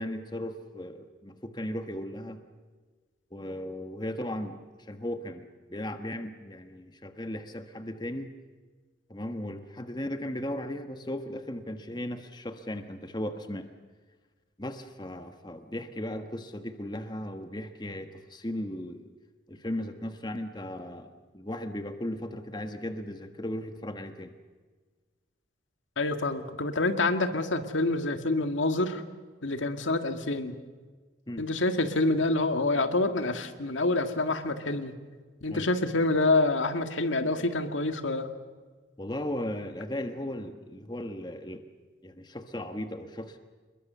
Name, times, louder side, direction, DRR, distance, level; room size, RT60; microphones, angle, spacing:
voice 1, 0.0-2.4 3.3-8.3 9.1-13.7 14.6-19.1 19.5-24.3 31.3-31.5 35.5-35.7 39.0-41.7 42.0-43.4, left 1 dB, 20° left, 7 dB, 1.4 m, -36 dB
voice 2, 26.0-29.0 29.4-30.5 31.4-34.9 35.4-38.3, left 2 dB, 90° left, 7 dB, 2.0 m, -27 dB
27.5 x 22.0 x 6.9 m, 1.4 s
head